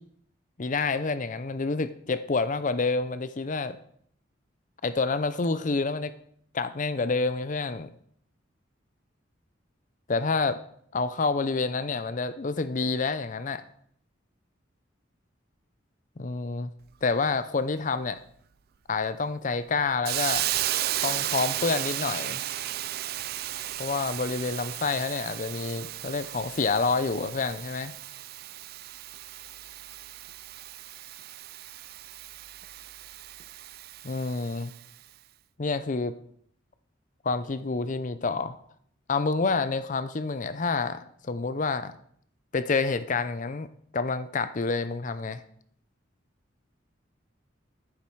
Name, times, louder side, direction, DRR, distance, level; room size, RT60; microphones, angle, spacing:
voice 1, 0.6-3.8 4.8-6.1 6.5-7.9 10.1-10.6 10.9-13.6 16.2-16.7 17.0-18.2 18.9-20.5 21.0-22.4 23.8-27.9 34.0-34.7 35.6-36.1 37.2-38.6 39.1-41.9 42.5-43.7 43.9-45.4, left 4 dB, 40° left, 13 dB, 0.6 m, -28 dB
Hiss, 20.0-34.8, right 14 dB, 55° right, 0.4 m, -34 dB
10.5 x 9.6 x 4.6 m, 0.64 s
head